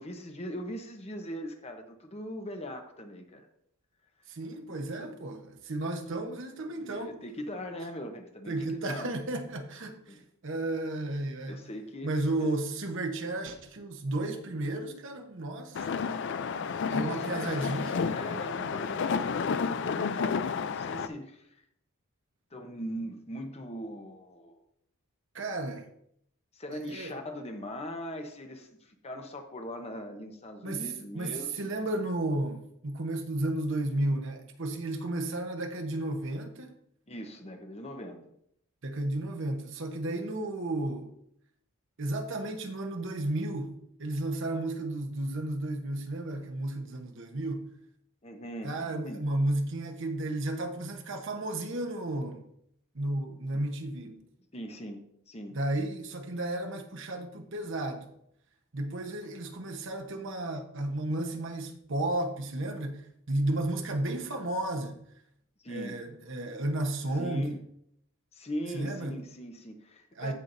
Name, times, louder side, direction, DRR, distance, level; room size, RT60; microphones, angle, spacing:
voice 1, 0.0-3.5 5.0-5.1 6.7-9.1 10.1-10.2 11.5-12.5 17.0-17.5 18.1-21.6 22.5-24.6 26.5-31.7 37.1-38.3 48.2-49.2 53.5-53.6 54.5-55.6 65.6-66.0 67.2-67.6 68.3-70.3, equal, 30° left, 0.8 m, -41 dB
voice 2, 4.3-7.2 8.5-10.2 10.4-11.6 12.0-15.9 16.9-18.1 25.3-25.9 26.9-27.1 30.6-30.8 31.1-36.7 38.8-41.1 42.0-47.7 48.6-52.5 52.9-54.2 55.5-58.1 58.7-65.0 65.7-67.5 68.7-69.2 70.2-70.3, right 1 dB, 55° right, 1.0 m, -33 dB
sound 1, 15.7-21.1, left 5 dB, 50° left, 0.4 m, -31 dB
15.5 x 5.8 x 2.6 m
head